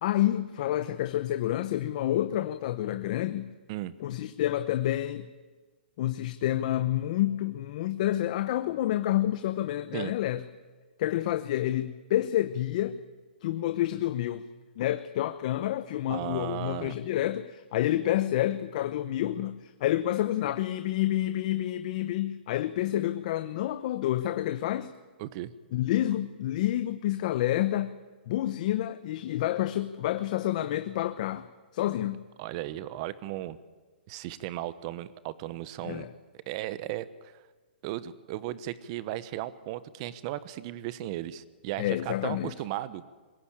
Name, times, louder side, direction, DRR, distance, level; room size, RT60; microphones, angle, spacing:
voice 1, 0.0-3.5 4.0-5.3 6.0-10.4 11.0-13.0 13.4-14.5 14.8-24.9 25.7-28.0 28.3-31.5 31.7-32.2 35.8-36.1 41.8-42.5, left 13 dB, 45° left, 11 dB, 0.8 m, -29 dB
voice 2, 16.1-17.0 25.2-25.5 32.4-33.6 34.1-36.1 36.5-37.1 37.8-43.0, right 14 dB, 35° right, 16 dB, 1.0 m, -36 dB
21.5 x 17.0 x 8.8 m, 1.4 s
hypercardioid pair, 155°, 6 cm